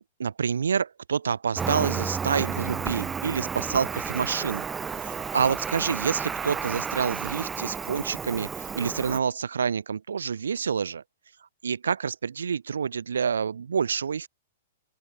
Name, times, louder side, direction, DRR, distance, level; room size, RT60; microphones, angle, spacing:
voice 1, 0.2-4.6 5.0-11.0 11.6-14.3, right 6 dB, 75° right, 3.0 m, -28 dB
Cricket, 1.6-9.2, right 6 dB, 15° right, 0.8 m, -32 dB
open air
figure-of-eight pair, 110°, 0 cm